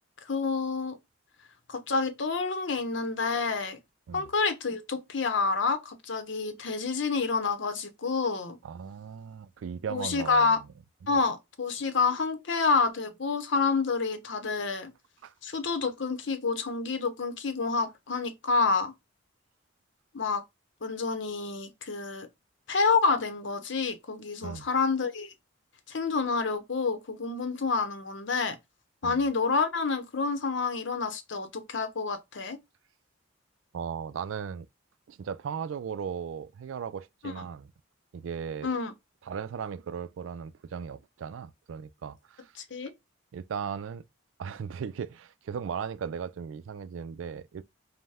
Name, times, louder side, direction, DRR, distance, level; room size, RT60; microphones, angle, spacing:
voice 1, 0.3-1.0 1.7-3.8 4.1-8.6 9.9-10.6 11.1-14.9 15.4-18.9 20.1-20.4 20.8-22.3 22.7-25.3 25.9-28.6 29.0-32.6 37.2-37.4 38.6-38.9 42.7-42.9, left 4 dB, 65° left, 0.7 m, -28 dB
voice 2, 8.6-10.6 11.0-11.2 15.2-15.3 24.4-24.7 29.0-29.2 33.7-34.7 35.1-37.7 38.1-38.7 39.2-42.5 43.3-44.0 44.4-47.6, right 7 dB, 75° right, 0.3 m, -37 dB
5.3 x 2.1 x 3.4 m
head